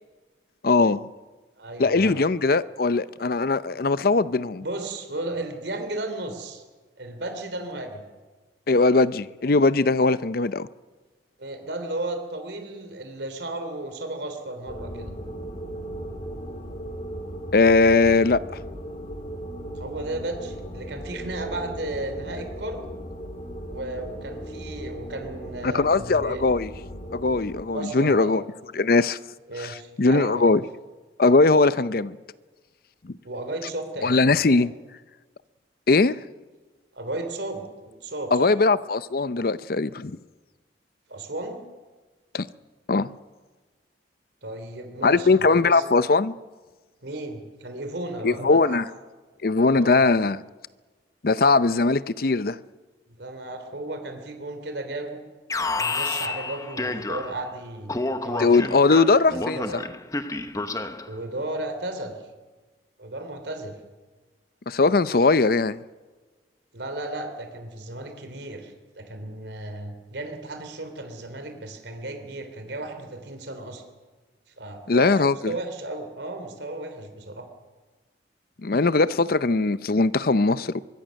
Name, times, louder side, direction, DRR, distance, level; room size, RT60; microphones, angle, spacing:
voice 1, 0.6-1.1 1.8-4.6 8.7-10.7 17.5-18.4 25.6-26.7 27.1-28.4 28.7-29.2 29.6-30.6 31.2-32.2 33.0-33.1 34.0-34.7 35.9-36.2 38.3-40.2 42.3-42.5 42.9-43.1 45.0-46.3 48.2-48.8 49.4-50.4 51.2-52.6 58.4-59.8 64.7-65.8 74.9-75.5 78.6-80.8, left 3 dB, 55° left, 0.6 m, -20 dB
voice 2, 1.6-2.2 4.6-6.6 7.0-8.0 11.4-15.2 19.8-22.9 23.7-26.4 27.7-28.3 29.5-30.5 33.3-34.6 36.9-38.5 41.1-41.6 44.4-45.8 47.0-48.8 49.7-50.0 53.1-55.2 55.8-57.9 58.2-58.8 59.3-59.8 61.1-62.2 63.0-63.8 66.7-73.8 74.6-77.5, right 2 dB, 75° right, 3.4 m, -34 dB
sound 1, 14.6-27.6, equal, 35° left, 2.2 m, -37 dB
Alarm, 55.5-57.5 57.9-61.1, left 3 dB, 20° left, 1.0 m, -30 dB
24.0 x 22.5 x 6.5 m
head